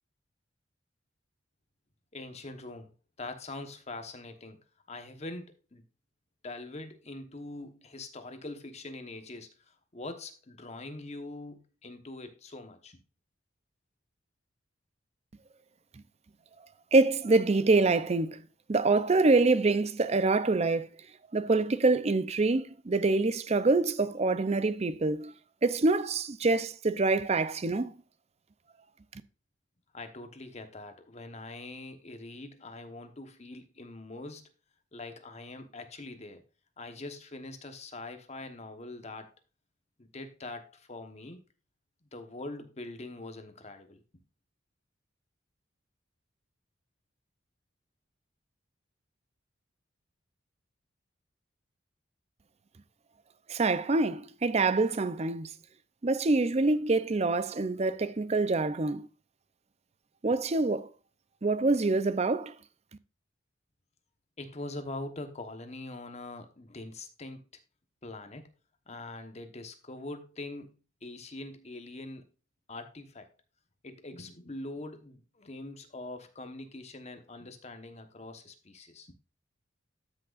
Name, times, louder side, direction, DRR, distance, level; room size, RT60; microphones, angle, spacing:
voice 1, 2.1-2.9 3.2-4.6 4.9-5.8 6.4-13.0 29.9-34.4 34.9-36.4 36.8-39.3 40.0-41.4 42.1-44.0 64.4-67.4 68.0-68.5 68.9-72.3 72.7-73.3 73.8-79.1, left 2 dB, 35° left, 1.1 m, -43 dB
voice 2, 16.9-18.4 18.7-20.9 21.3-25.3 25.6-27.9 53.5-55.5 56.0-59.1 60.2-60.9 61.4-62.5, right 3 dB, 35° right, 0.5 m, -25 dB
13.0 x 6.3 x 2.5 m
head